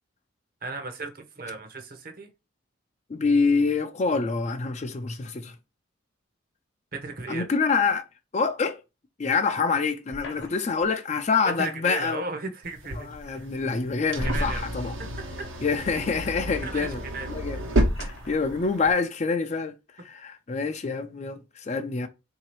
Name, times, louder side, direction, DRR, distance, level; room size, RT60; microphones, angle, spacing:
voice 1, 0.6-2.3 6.9-7.5 11.4-13.5 14.2-14.7 15.4-15.5 16.6-17.4, right 3 dB, 45° right, 0.8 m, -36 dB
voice 2, 3.1-5.5 7.3-8.0 8.3-8.8 9.2-12.2 13.0-14.9 15.6-17.0 17.3-17.6 18.0-22.1, left 4 dB, 35° left, 0.4 m, -26 dB
sound 1, 10.1-10.9 12.6-12.7 14.0-14.9 15.8-15.9 16.8-16.9 17.9-18.4, left 3 dB, 55° left, 1.0 m, -44 dB
sound 2, 12.6-18.9, right 1 dB, 80° right, 1.1 m, -30 dB
3.8 x 2.7 x 3.0 m
head